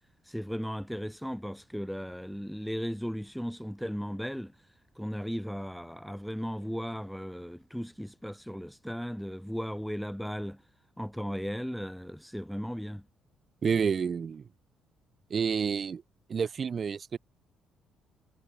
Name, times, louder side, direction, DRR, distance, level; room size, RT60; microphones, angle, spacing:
voice 1, 0.2-4.5 5.0-10.6 11.0-13.0, equal, ahead, 3.2 m, -36 dB
voice 2, 13.6-14.5 15.3-16.0 16.3-17.2, right 6 dB, 40° right, 6.6 m, -29 dB
cardioid pair, 95°, 0 cm